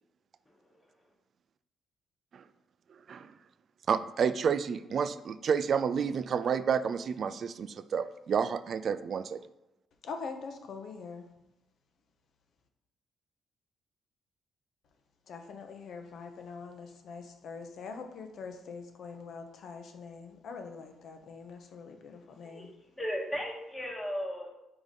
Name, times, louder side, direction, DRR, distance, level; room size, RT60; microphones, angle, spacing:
voice 1, 0.5-0.8 22.4-24.6, equal, 15° left, -4 dB, 1.1 m, -37 dB
voice 2, 2.9-3.3 3.9-9.4, right 7 dB, 55° right, 14 dB, 0.3 m, -30 dB
voice 3, 10.0-11.3 15.3-22.7, left 5 dB, 65° left, 5 dB, 0.8 m, -43 dB
4.8 x 4.8 x 4.1 m, 0.93 s
cardioid pair, 90°, 0 cm